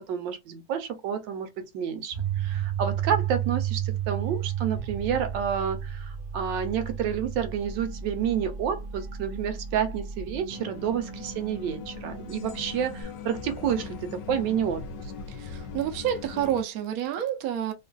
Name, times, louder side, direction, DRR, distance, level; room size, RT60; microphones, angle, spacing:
voice 1, 0.0-14.8, right 8 dB, 85° right, 1.3 m, -29 dB
sound 1, 2.1-13.0, right 9 dB, 35° right, 0.7 m, -33 dB
sound 2, 10.5-16.6, left 5 dB, 75° left, 1.2 m, -40 dB
voice 2, 15.3-17.7, right 10 dB, 65° right, 1.0 m, -29 dB
3.2 x 2.4 x 2.2 m
omnidirectional pair, 1.9 m